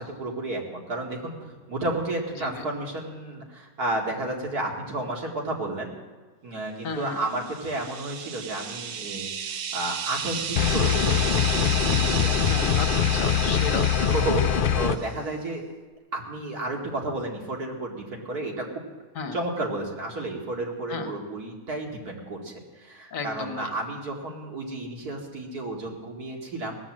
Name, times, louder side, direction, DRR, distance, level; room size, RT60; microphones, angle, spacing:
voice 1, 0.0-5.9 6.4-9.3 9.7-12.8 14.0-15.6 16.1-18.7 19.3-26.8, right 2 dB, 75° right, 0 dB, 2.8 m, -32 dB
voice 2, 6.8-7.2 12.5-13.9 19.2-19.3 20.9-21.1 23.1-23.7, left 4 dB, 60° left, 7 dB, 1.5 m, -33 dB
sound 1, 7.3-15.1, right 7 dB, 90° right, 1.4 m, -33 dB
sound 2, 10.6-15.0, left 8 dB, 80° left, 0.4 m, -23 dB
18.0 x 9.1 x 7.4 m, 1.4 s
omnidirectional pair, 1.6 m